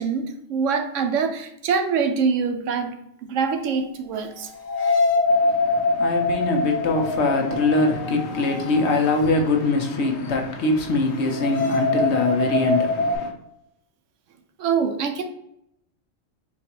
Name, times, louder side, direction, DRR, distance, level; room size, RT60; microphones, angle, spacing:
voice 1, 0.0-2.9 3.2-4.5 14.6-15.2, right 5 dB, 75° right, 0.9 m, -24 dB
sound 1, 3.5-3.6 4.5-9.5 9.8-9.9 11.2-13.2, left 2 dB, 85° left, 1.3 m, -24 dB
voice 2, 5.3-13.3, left 3 dB, 65° left, 0.9 m, -23 dB
4.3 x 2.4 x 4.3 m
omnidirectional pair, 1.3 m